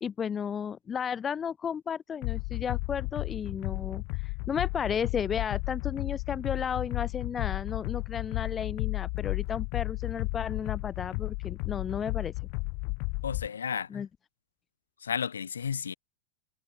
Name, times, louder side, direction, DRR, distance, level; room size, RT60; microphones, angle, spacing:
voice 1, 0.0-4.0 4.5-12.3 13.9-14.1, left 7 dB, 20° left, 2.2 m, -33 dB
sound 1, 2.2-13.5, left 37 dB, 45° left, 1.0 m, -33 dB
voice 2, 13.2-13.9 15.0-15.9, left 7 dB, 70° left, 3.3 m, -32 dB
figure-of-eight pair, 90°, 0 cm